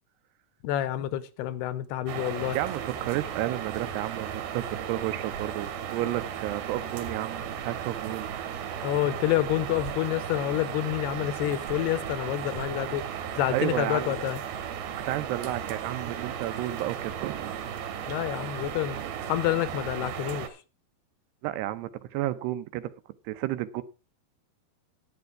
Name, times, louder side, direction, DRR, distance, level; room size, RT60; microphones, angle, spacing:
voice 1, 0.6-2.6 8.8-13.1 13.3-14.4 18.1-19.0 19.3-20.6, left 13 dB, 85° left, 2.9 m, -28 dB
sound 1, 2.1-20.5, right 8 dB, 70° right, 3.2 m, -35 dB
voice 2, 2.5-8.3 13.5-14.2 15.0-17.6 19.0-19.1 21.4-22.9 23.3-23.8, right 14 dB, 90° right, 3.0 m, -32 dB
11.0 x 9.6 x 4.7 m
omnidirectional pair, 4.6 m